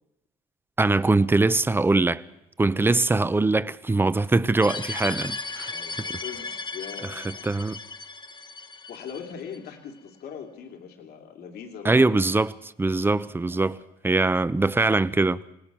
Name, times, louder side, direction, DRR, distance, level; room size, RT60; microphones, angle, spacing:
voice 1, 0.8-2.2 2.6-5.7 7.0-7.1 7.4-7.8 11.8-13.8 14.0-15.4, right 3 dB, 15° right, 0.7 m, -22 dB
sound 1, 4.6-9.6, left 3 dB, 30° left, 1.1 m, -36 dB
voice 2, 5.7-7.5 8.9-12.1 12.8-13.1 13.6-13.8 14.2-14.3, left 7 dB, 70° left, 2.8 m, -41 dB
27.0 x 18.5 x 6.2 m
cardioid pair, 110°, 17 cm